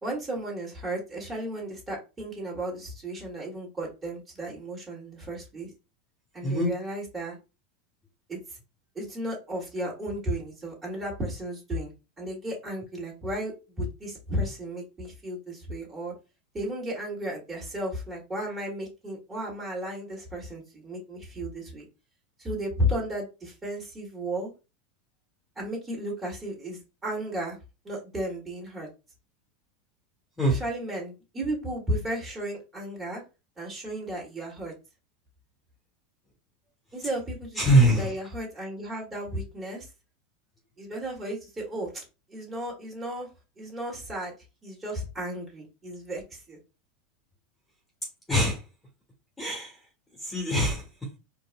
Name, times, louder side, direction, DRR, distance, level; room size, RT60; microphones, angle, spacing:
voice 1, 0.0-5.7 6.3-7.4 8.3-8.6 9.0-11.9 12.2-16.1 16.5-21.9 22.4-24.5 25.6-27.6 27.8-28.9 30.4-33.2 33.6-34.7 36.9-39.9 40.8-42.0 42.3-43.3 43.6-44.3 44.6-46.6, equal, 20° right, -2 dB, 2.0 m, -34 dB
voice 2, 37.6-38.1 48.3-48.6 49.4-49.7 50.2-50.8, right 1 dB, 10° left, -2 dB, 1.4 m, -22 dB
4.4 x 2.4 x 2.3 m, 0.28 s
hypercardioid pair, 105°, 0 cm